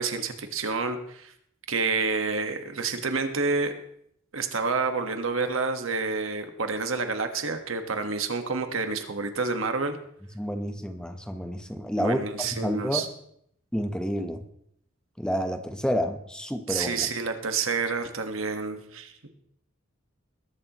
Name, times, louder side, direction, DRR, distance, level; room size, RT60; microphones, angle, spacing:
voice 1, 0.0-1.3 1.7-3.7 4.3-10.0 12.0-13.1 16.7-19.1, right 4 dB, 85° right, 6 dB, 1.5 m, -28 dB
voice 2, 10.3-13.0 13.7-14.4 15.2-17.1, equal, 5° left, 6 dB, 1.0 m, -29 dB
21.0 x 11.5 x 3.0 m, 0.70 s
head